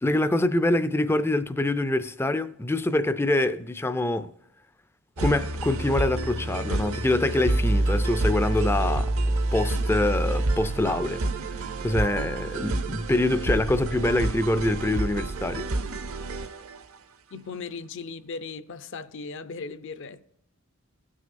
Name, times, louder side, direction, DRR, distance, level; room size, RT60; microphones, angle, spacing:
voice 1, 0.0-4.3 5.2-9.1 9.5-11.2 11.8-15.7, left 2 dB, 10° left, 0.4 m, -25 dB
sound 1, 5.2-17.0, right 2 dB, 65° right, 0.7 m, -28 dB
voice 2, 17.3-20.2, left 4 dB, 55° left, 0.6 m, -37 dB
18.0 x 6.3 x 2.5 m
head